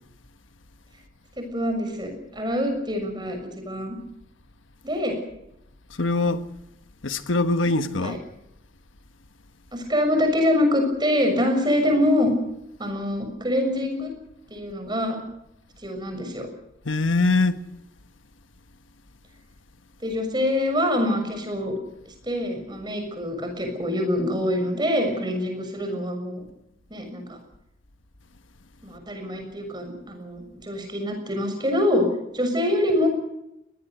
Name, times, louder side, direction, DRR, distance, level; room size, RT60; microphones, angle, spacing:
voice 1, 1.4-3.4 3.6-4.0 4.8-5.2 8.0-8.2 9.7-12.3 12.8-14.1 14.5-15.2 15.8-16.5 20.0-21.7 22.1-26.4 26.9-27.4 28.8-32.1 32.3-33.1, left 1 dB, 20° right, 6.6 m, -25 dB
voice 2, 6.0-6.4 7.0-8.2 16.8-17.6, left 3 dB, 85° left, 1.4 m, -22 dB
22.5 x 19.5 x 8.0 m
head